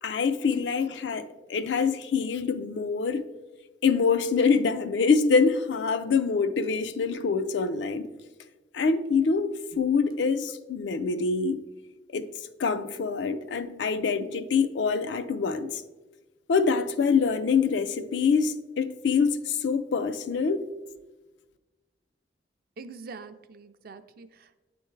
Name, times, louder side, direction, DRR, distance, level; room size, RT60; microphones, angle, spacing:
voice 1, 0.0-3.2 3.8-8.1 8.7-11.6 12.1-12.3 12.6-15.8 16.5-20.7, left 5 dB, 75° left, 0.4 m, -25 dB
voice 2, 22.8-24.6, right 4 dB, 55° right, 0.4 m, -44 dB
9.5 x 3.5 x 3.2 m
head